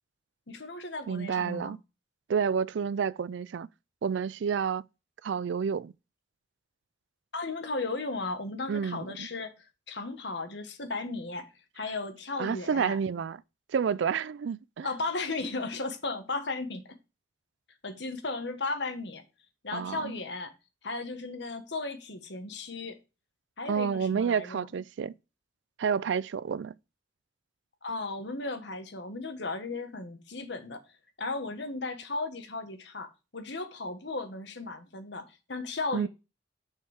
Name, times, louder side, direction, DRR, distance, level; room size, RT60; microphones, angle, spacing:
voice 1, 0.5-1.8 7.3-9.5 9.9-11.5 11.7-13.0 14.8-16.8 17.8-19.2 19.6-20.5 20.8-23.0 23.6-24.7 27.8-30.8 31.2-36.1, left 3 dB, 65° left, 1.4 m, -35 dB
voice 2, 1.1-1.8 2.3-3.7 4.0-4.8 5.2-5.9 8.7-9.3 12.4-13.4 13.7-14.9 19.7-20.1 23.7-25.1 25.8-26.7 35.9-36.1, right 6 dB, 70° right, 0.4 m, -29 dB
6.7 x 5.4 x 4.9 m
head